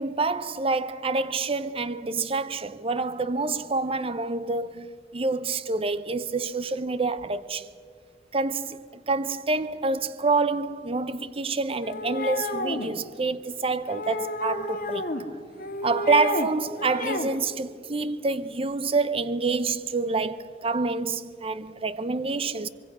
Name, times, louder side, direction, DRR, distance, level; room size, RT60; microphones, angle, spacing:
voice 1, 0.0-7.7 8.3-15.1 15.8-22.7, right 3 dB, 30° right, 0.7 m, -27 dB
sound 1, 11.8-12.9 13.9-15.2 15.6-16.5 16.8-17.3, left 2 dB, 55° left, 1.7 m, -30 dB
25.0 x 22.0 x 6.2 m
head